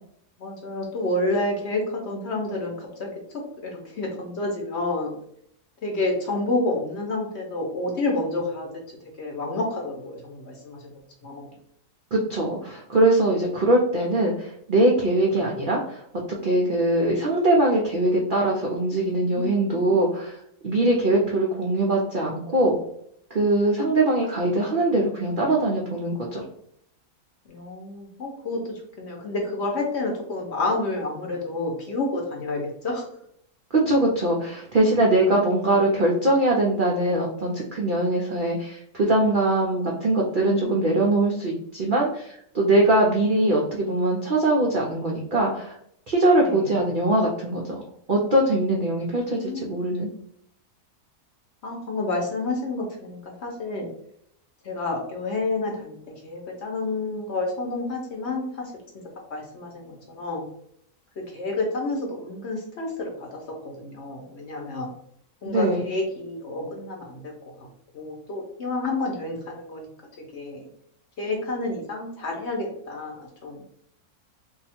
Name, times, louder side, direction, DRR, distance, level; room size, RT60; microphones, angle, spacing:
voice 1, 0.4-5.1 5.8-8.7 9.2-11.5 19.1-20.0 27.5-33.2 40.4-40.9 46.4-46.7 49.2-49.9 51.6-53.9 54.6-56.0 56.2-58.7 59.3-60.5 61.2-64.9 65.4-67.3 67.9-69.9 70.3-70.7 71.2-73.7, left 2 dB, 55° left, 0 dB, 0.9 m, -29 dB
voice 2, 12.1-16.0 16.3-20.4 20.6-22.7 23.3-26.4 33.9-45.7 46.1-47.8 48.1-50.1 65.5-65.8, right 1 dB, 70° right, -2 dB, 0.4 m, -22 dB
2.7 x 2.3 x 4.2 m, 0.69 s
omnidirectional pair, 1.6 m